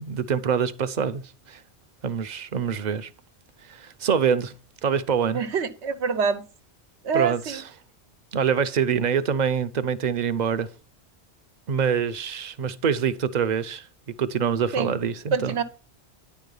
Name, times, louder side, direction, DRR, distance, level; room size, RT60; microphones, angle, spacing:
voice 1, 0.0-1.6 2.0-3.1 3.6-4.5 4.8-5.4 7.1-7.7 8.3-10.7 11.7-13.9 14.2-15.6, right 7 dB, 50° right, 0.6 m, -25 dB
voice 2, 5.3-6.4 7.0-7.6 14.7-14.9 15.3-15.6, right 6 dB, 85° right, 1.1 m, -25 dB
9.8 x 4.8 x 5.4 m
omnidirectional pair, 1.1 m